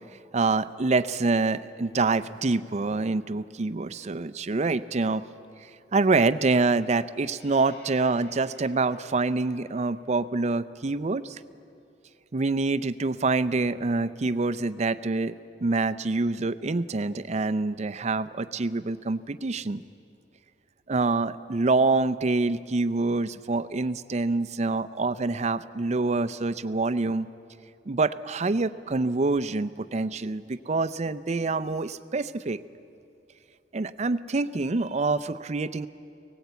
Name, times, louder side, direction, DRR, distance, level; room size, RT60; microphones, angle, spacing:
voice 1, 0.3-5.2 5.9-11.4 12.3-15.3 15.6-19.8 20.9-27.3 27.9-32.6 33.7-35.9, right 3 dB, 40° right, 13 dB, 0.5 m, -26 dB
sound 1, 7.3-10.9, left 1 dB, 70° left, 3.6 m, -52 dB
20.5 x 18.0 x 8.2 m, 2.5 s
head